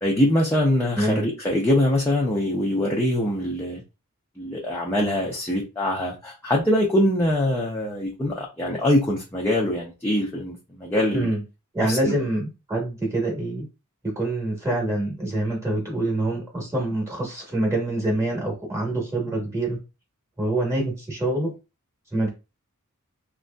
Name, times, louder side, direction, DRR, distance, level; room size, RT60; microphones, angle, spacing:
voice 1, 0.0-3.8 4.4-11.3 11.8-12.2, left 1 dB, 10° left, 0.5 m, -23 dB
voice 2, 0.9-1.3 11.1-11.4 11.7-13.6 14.0-19.8 20.4-21.5 22.1-22.3, right 1 dB, 15° right, 1.0 m, -25 dB
2.8 x 2.6 x 2.2 m
head